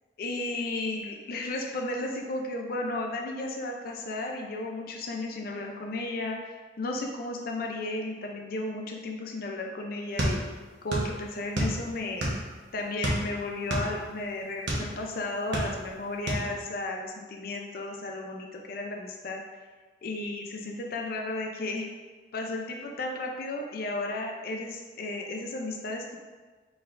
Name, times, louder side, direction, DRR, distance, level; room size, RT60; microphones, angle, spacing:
voice 1, 0.2-10.4 10.8-12.3 12.7-19.4 20.0-21.9 22.3-26.2, left 2 dB, 50° left, 1 dB, 0.4 m, -34 dB
sound 1, 10.2-11.1 11.4-12.5 13.0-14.9 15.3-16.0 16.3-16.5, right 1 dB, 70° right, 1.0 m, -28 dB
4.4 x 4.4 x 2.5 m, 1.4 s
head